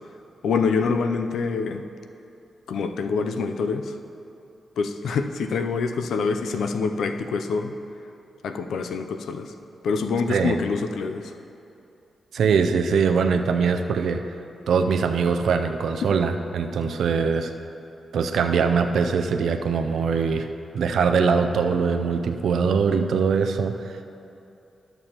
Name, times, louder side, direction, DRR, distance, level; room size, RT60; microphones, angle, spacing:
voice 1, 0.4-1.8 2.7-3.9 4.8-7.8 8.4-9.5 9.8-11.3, left 4 dB, 80° left, 7 dB, 0.4 m, -25 dB
voice 2, 12.3-14.2 14.7-17.5 18.1-20.5 20.7-24.0, right 5 dB, 80° right, 7 dB, 0.4 m, -22 dB
12.5 x 6.7 x 2.9 m, 2.8 s
cardioid pair, 70°, 0 cm